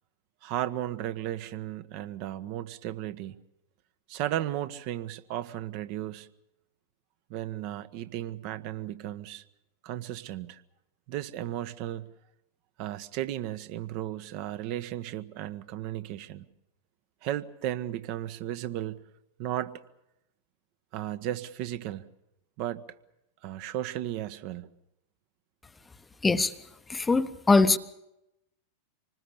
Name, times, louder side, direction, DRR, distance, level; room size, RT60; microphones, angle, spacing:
voice 1, 0.4-3.4 4.1-6.3 7.3-9.4 9.8-10.6 11.1-12.1 12.8-16.4 17.2-19.0 19.4-19.8 20.9-22.0 22.6-22.8 23.4-24.7, right 13 dB, 45° right, 11 dB, 1.3 m, -34 dB
voice 2, 26.9-27.8, left 3 dB, 10° left, 12 dB, 1.0 m, -22 dB
26.5 x 20.0 x 7.0 m, 0.85 s
figure-of-eight pair, 90°, 0 cm